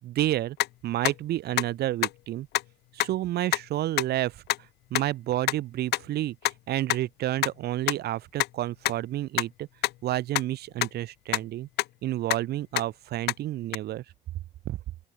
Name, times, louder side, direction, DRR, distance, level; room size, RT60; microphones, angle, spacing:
voice 1, 0.0-0.6 0.8-2.5 2.9-4.4 4.9-9.7 10.0-11.7 12.0-14.0 14.7-14.8, right 14 dB, 70° right, 6.9 m, -30 dB
sound 1, 0.6-0.7 1.1-1.2 1.6-1.7 2.0-2.1 2.5-2.6 3.0-3.1 3.5-3.6 4.0-4.1 4.5-4.6 5.0-5.1 5.5-5.6 5.9-6.0 6.5-6.6 6.9-7.0 7.4-7.5 7.9-8.0 8.4-8.5 8.9-9.0 9.4-9.5 9.8-9.9 10.4-10.5 10.8-10.9 11.3-11.4 11.8-11.9 12.3-12.4 12.8-12.9 13.3-13.4 13.7-13.8, left 17 dB, 80° left, 1.2 m, -24 dB
open air
cardioid pair, 110°, 17 cm